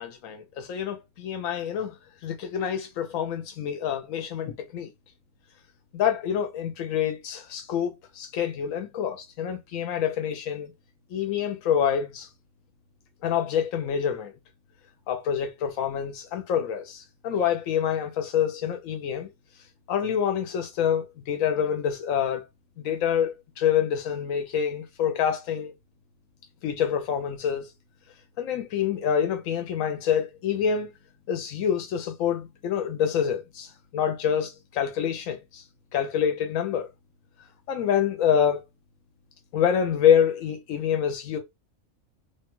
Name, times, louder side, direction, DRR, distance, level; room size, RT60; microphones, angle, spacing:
voice 1, 0.0-1.9 2.2-4.9 5.9-10.7 11.1-12.3 13.2-14.3 15.1-19.3 19.9-22.5 22.8-25.7 26.6-27.7 28.4-30.9 31.3-35.6 35.9-36.9 37.7-38.6 39.5-41.4, left 8 dB, 85° left, 1.0 m, -26 dB
3.1 x 2.2 x 2.9 m
omnidirectional pair, 1.4 m